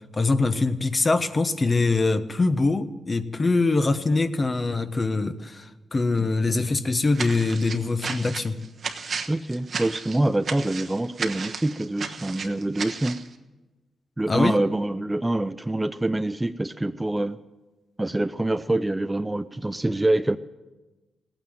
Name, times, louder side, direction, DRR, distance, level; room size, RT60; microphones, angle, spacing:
voice 1, 0.1-8.6 14.3-14.6, left 3 dB, 30° left, 10 dB, 1.0 m, -23 dB
sound 1, 7.1-13.3, right 5 dB, 55° right, 1.2 m, -34 dB
voice 2, 9.3-13.2 14.2-17.4 18.0-20.4, right 1 dB, 15° right, 11 dB, 0.5 m, -25 dB
17.0 x 9.2 x 9.2 m, 1.1 s
cardioid pair, 85°, 0 cm